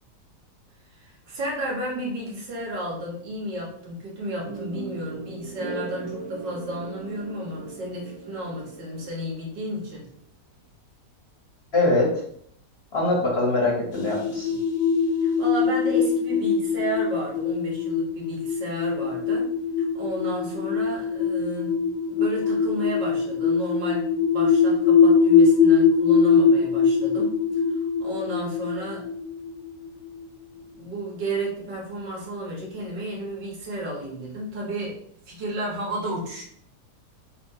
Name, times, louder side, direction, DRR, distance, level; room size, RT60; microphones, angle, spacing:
voice 1, 1.0-10.1 15.2-19.5 19.8-21.8 22.1-27.4 27.8-29.1 30.8-35.0 35.3-36.4, right 1 dB, 80° right, -3 dB, 2.0 m, -33 dB
sound 1, 4.5-9.6, right 3 dB, 35° right, 2.3 m, -38 dB
voice 2, 11.7-12.2 12.9-14.6, left 2 dB, 40° left, -3 dB, 1.1 m, -23 dB
sound 2, 13.9-30.2, left 5 dB, 60° left, 1.3 m, -22 dB
6.1 x 2.8 x 2.6 m, 0.64 s
omnidirectional pair, 1.9 m